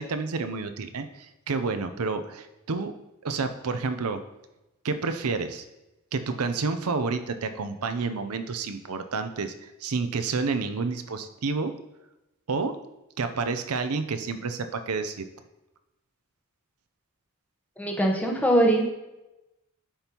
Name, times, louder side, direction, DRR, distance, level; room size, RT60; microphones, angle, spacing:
voice 1, 0.0-2.9 3.2-4.2 4.8-5.6 6.1-11.7 12.5-12.8 13.2-15.3, right 4 dB, 90° right, 9 dB, 0.6 m, -29 dB
voice 2, 17.8-18.9, right 1 dB, 5° left, 0 dB, 1.0 m, -22 dB
10.0 x 5.3 x 3.0 m, 0.97 s
head